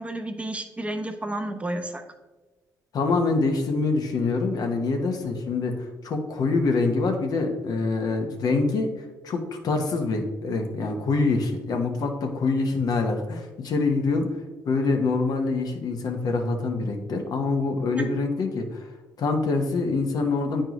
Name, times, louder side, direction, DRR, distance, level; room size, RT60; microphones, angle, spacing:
voice 1, 0.0-2.0 18.0-18.1, right 1 dB, 15° right, 6 dB, 0.8 m, -31 dB
voice 2, 2.9-8.9 9.2-14.3 14.6-18.9 19.2-20.6, left 3 dB, 65° left, 4 dB, 1.0 m, -25 dB
9.1 x 4.5 x 3.0 m, 1.2 s
cardioid pair, 85°, 7 cm